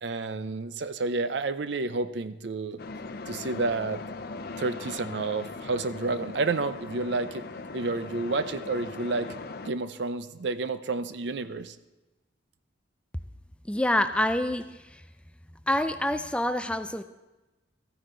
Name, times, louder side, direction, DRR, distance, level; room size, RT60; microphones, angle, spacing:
voice 1, 0.0-2.8 3.3-4.0 4.6-7.4 7.7-9.3 9.7-11.7, right 3 dB, 65° right, 12 dB, 0.6 m, -30 dB
sound 1, 2.8-9.7, left 3 dB, 55° left, 0.6 m, -39 dB
voice 2, 13.7-14.6 14.9-15.0 15.7-17.0, left 1 dB, 5° left, 9 dB, 0.3 m, -26 dB
14.0 x 10.0 x 3.8 m, 1.1 s
head